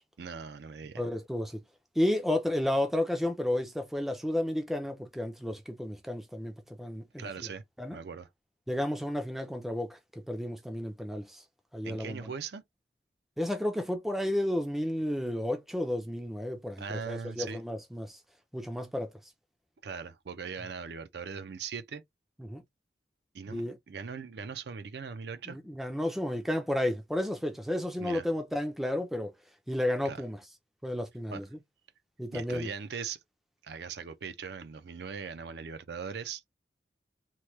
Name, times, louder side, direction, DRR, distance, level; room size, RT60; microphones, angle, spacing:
voice 1, 0.2-1.1 7.2-8.3 11.8-12.6 16.8-17.6 19.8-22.0 23.3-25.6 28.0-28.3 30.0-30.2 31.3-31.4 32.3-33.2 33.6-36.4, right 6 dB, 70° right, 0.4 m, -40 dB
voice 2, 1.0-1.6 2.0-6.5 6.8-7.5 7.8-8.0 8.7-10.0 10.3-11.4 11.7-12.2 13.4-18.2 18.5-19.1 22.4-22.6 23.5-23.8 25.5-29.3 29.7-30.4 30.8-31.4 32.2-32.7, left 1 dB, ahead, 0.4 m, -32 dB
3.0 x 2.2 x 3.1 m
head